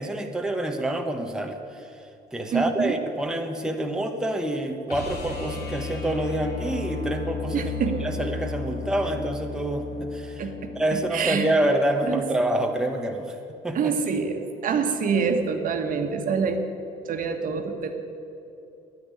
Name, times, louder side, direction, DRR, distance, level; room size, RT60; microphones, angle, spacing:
voice 1, 0.0-1.9 2.3-7.7 8.0-10.5 10.7-13.4 13.6-13.9, right 1 dB, 5° right, 3 dB, 1.0 m, -27 dB
voice 2, 2.5-2.9 7.5-8.1 10.4-10.5 10.9-11.5 12.1-12.3 13.7-16.6 17.0-17.9, right 6 dB, 55° right, 5 dB, 1.5 m, -26 dB
sound 1, 4.9-10.9 13.3-13.4, left 4 dB, 65° left, 3.0 m, -34 dB
10.5 x 9.9 x 9.6 m, 2.7 s
cardioid pair, 110°, 17 cm